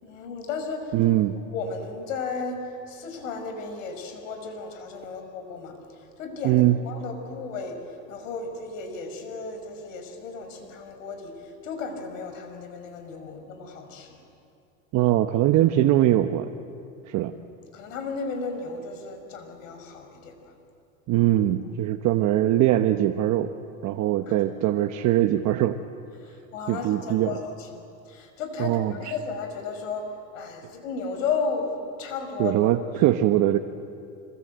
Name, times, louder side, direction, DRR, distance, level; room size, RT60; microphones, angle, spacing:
voice 1, 0.0-0.9 1.5-5.8 6.2-7.8 8.1-14.2 17.7-20.5 24.3-24.4 26.2-30.1 30.3-32.6, left 4 dB, 85° left, 6 dB, 5.1 m, -34 dB
voice 2, 0.9-1.3 6.4-6.8 14.9-16.5 17.1-17.3 21.1-23.5 23.8-25.8 26.7-27.4 28.6-29.1 32.4-33.6, right 13 dB, 45° right, 6 dB, 1.0 m, -22 dB
25.5 x 22.0 x 8.0 m, 2.5 s
supercardioid pair, 120°, 38 cm